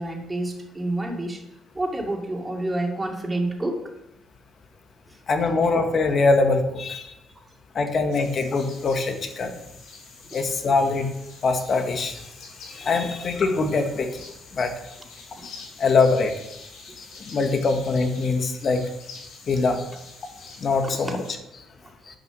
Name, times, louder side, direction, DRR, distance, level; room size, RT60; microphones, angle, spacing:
voice 1, 0.0-1.4 1.7-3.8 5.1-5.2 15.4-15.5 20.8-20.9 21.8-21.9, right 1 dB, 20° right, 1 dB, 2.4 m, -28 dB
voice 2, 5.3-7.1 7.7-9.5 10.3-11.1 11.4-12.2 12.7-14.2 14.5-14.7 15.4-16.3 17.0-17.1 17.3-18.8 19.5-19.9 20.6-21.2, left 3 dB, 50° left, 6 dB, 1.6 m, -23 dB
sound 1, 8.1-21.3, left 3 dB, 80° left, 4.3 m, -46 dB
10.5 x 6.0 x 6.0 m, 0.89 s
cardioid pair, 80°, 0 cm